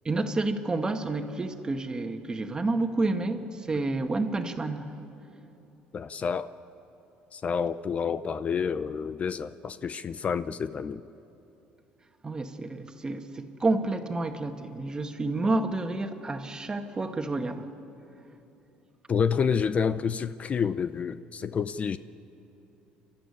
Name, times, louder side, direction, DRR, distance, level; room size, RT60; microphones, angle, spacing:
voice 1, 0.0-4.9 12.2-17.6, right 2 dB, 20° right, 6 dB, 1.7 m, -29 dB
voice 2, 5.9-6.5 7.3-11.0 19.1-22.0, left 6 dB, 40° left, 14 dB, 0.6 m, -29 dB
29.0 x 12.5 x 9.9 m, 2.9 s
supercardioid pair, 95°, 4 cm